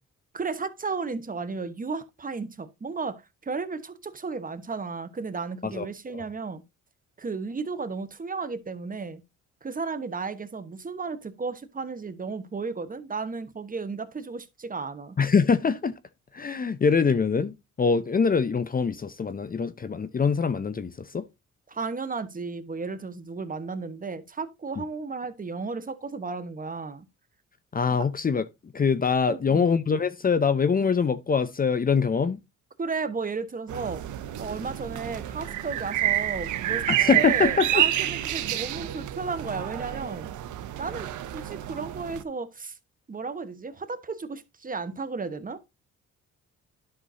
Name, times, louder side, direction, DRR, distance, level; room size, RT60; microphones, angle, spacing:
voice 1, 0.3-6.6 7.2-9.2 9.6-15.2 21.7-27.0 27.9-28.0 29.3-29.7 32.8-34.0 34.4-40.3 40.8-42.8 43.1-45.6, right 4 dB, 30° right, 1.1 m, -34 dB
voice 2, 15.2-15.9 16.3-21.3 27.7-28.4 28.7-32.4 36.9-37.8, left 5 dB, 30° left, 0.7 m, -24 dB
sound 1, 33.7-42.2, right 12 dB, 75° right, 1.0 m, -29 dB
11.0 x 6.0 x 2.7 m
cardioid pair, 90°, 30 cm